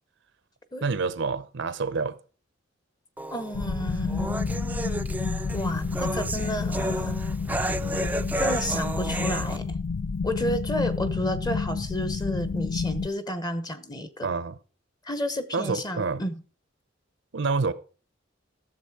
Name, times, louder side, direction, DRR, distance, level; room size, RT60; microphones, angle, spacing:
voice 1, 0.8-2.2 14.2-14.6 15.5-16.2 17.3-17.7, right 4 dB, 65° right, 0.7 m, -27 dB
sound 1, 3.2-9.6, right 1 dB, 10° right, 0.5 m, -32 dB
voice 2, 3.3-4.3 5.5-7.2 8.4-9.8 10.2-14.3 15.0-16.4, equal, 20° left, 1.0 m, -31 dB
sound 2, 3.5-13.1, left 4 dB, 70° left, 0.5 m, -30 dB
13.0 x 7.2 x 4.8 m
head